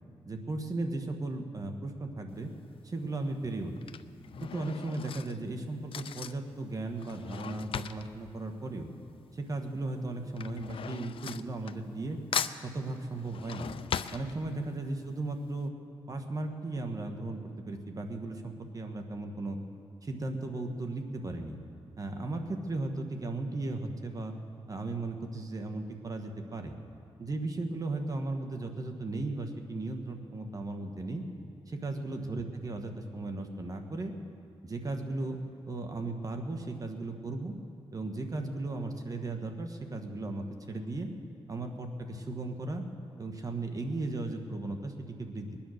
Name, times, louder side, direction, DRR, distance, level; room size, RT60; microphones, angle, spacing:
voice 1, 0.3-2.5 2.8-3.8 4.4-8.9 9.3-12.2 12.6-13.7 14.1-15.7 16.1-19.6 20.0-21.6 22.0-24.3 24.7-26.7 27.2-31.2 31.7-34.1 34.6-35.4 35.7-37.5 37.9-41.1 41.5-42.8 43.2-45.5, right 2 dB, 40° right, 5 dB, 1.5 m, -36 dB
Drawer open or close / Cutlery silverware, 2.3-2.7 3.5-9.4 9.7-12.1 12.3-14.9 15.3-15.4 15.6-15.7, left 7 dB, 65° left, 0.5 m, -39 dB
21.5 x 10.0 x 6.6 m, 2.4 s
cardioid pair, 80°, 10 cm